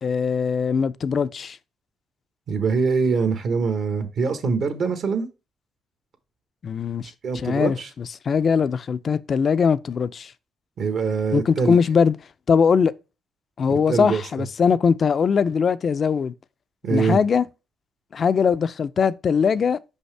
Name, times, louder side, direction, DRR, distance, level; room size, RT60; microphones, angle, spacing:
voice 1, 0.0-1.6 6.6-10.3 11.3-12.2 12.5-12.9 13.6-16.3 16.9-17.5 18.1-19.8, left 6 dB, 50° left, 0.4 m, -21 dB
voice 2, 2.5-5.3 7.2-7.9 10.8-11.7 13.7-14.2 16.8-17.2, right 5 dB, 65° right, 1.0 m, -23 dB
5.6 x 5.4 x 3.3 m
cardioid pair, 90°, 0 cm